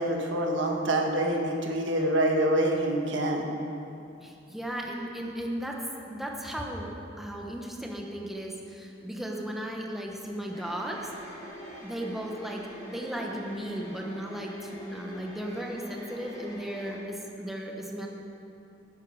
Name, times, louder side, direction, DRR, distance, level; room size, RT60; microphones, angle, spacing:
voice 1, 0.0-3.4, right 1 dB, 70° right, 1 dB, 1.6 m, -26 dB
voice 2, 4.2-5.8 6.1-6.9 7.2-11.0 11.8-18.1, equal, ahead, -1 dB, 1.2 m, -36 dB
sound 1, 10.5-17.0, equal, 20° left, 4.0 m, -44 dB
18.5 x 10.0 x 4.9 m, 2.7 s
head